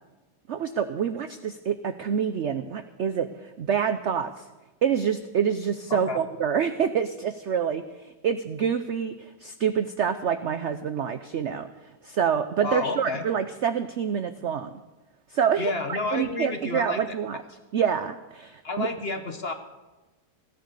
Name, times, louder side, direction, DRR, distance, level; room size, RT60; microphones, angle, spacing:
voice 1, 0.5-4.5 4.8-14.7 15.3-17.4 17.7-18.9, right 7 dB, 70° right, 11 dB, 0.6 m, -27 dB
voice 2, 12.6-13.2 15.6-17.2 18.6-19.5, left 3 dB, 40° left, 7 dB, 1.1 m, -30 dB
16.0 x 10.5 x 6.8 m, 1.1 s
omnidirectional pair, 1.9 m